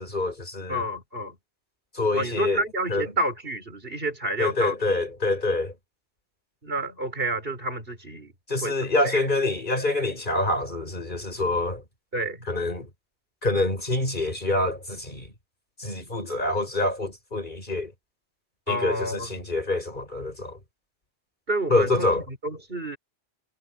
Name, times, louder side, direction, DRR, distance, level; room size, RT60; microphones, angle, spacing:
voice 1, 0.0-0.8 1.9-2.6 2.9-3.0 4.4-5.7 8.5-11.8 12.5-12.9 13.4-15.3 15.8-17.9 18.7-20.6 21.7-22.2, left 2 dB, 45° left, 6.2 m, -26 dB
voice 2, 0.7-1.4 2.1-4.8 6.6-8.3 8.6-9.2 12.1-12.5 18.7-19.3 19.7-19.8 21.5-23.0, right 1 dB, 55° right, 5.3 m, -29 dB
omnidirectional pair, 1.1 m